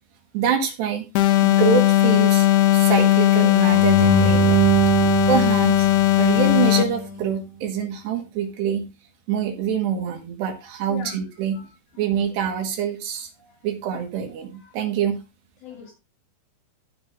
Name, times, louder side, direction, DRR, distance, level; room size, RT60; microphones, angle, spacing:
voice 1, 0.3-1.1 1.4-2.5 2.7-4.6 5.3-5.9 6.2-8.9 9.3-11.6 12.0-13.3 13.6-15.2, right 8 dB, 70° right, 4 dB, 3.9 m, -25 dB
sound 1, 1.1-7.0, left 14 dB, 75° left, 2.5 m, -17 dB
sound 2, 3.7-6.9, right 2 dB, 40° right, 2.2 m, -19 dB
voice 2, 14.4-14.8 15.6-15.9, left 8 dB, 55° left, 0 dB, 3.7 m, -40 dB
15.0 x 5.8 x 3.5 m, 0.27 s
omnidirectional pair, 5.2 m